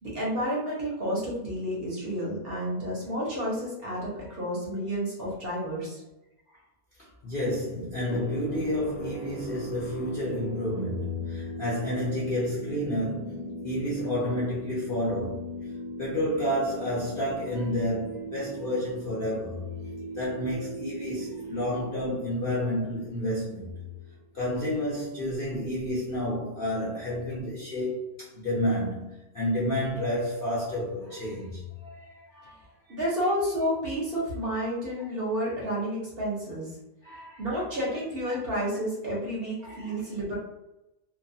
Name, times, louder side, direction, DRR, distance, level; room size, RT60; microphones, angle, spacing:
voice 1, 0.0-6.0 32.9-36.7 37.4-40.3, equal, 50° right, 0.8 m, -30 dB
voice 2, 7.0-15.5 16.0-19.6 20.1-23.8 24.3-32.6 37.0-37.9 38.7-38.8 39.6-40.0, left 1 dB, 50° left, 0.7 m, -30 dB
sound 1, 7.9-24.2, right 2 dB, 85° left, 1.4 m, -39 dB
2.9 x 2.2 x 2.6 m
omnidirectional pair, 1.6 m